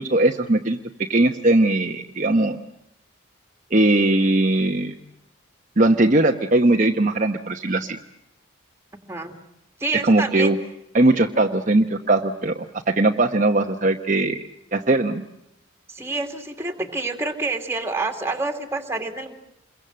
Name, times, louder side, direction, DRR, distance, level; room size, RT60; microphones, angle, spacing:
voice 1, 0.0-2.6 3.7-4.9 5.8-8.0 10.0-10.6 10.9-12.6 12.9-14.4 14.7-15.2, right 2 dB, 35° right, 3 dB, 1.0 m, -19 dB
voice 2, 9.8-10.5 15.9-19.3, right 3 dB, 10° right, 4 dB, 2.4 m, -27 dB
28.0 x 23.0 x 7.7 m, 0.81 s
head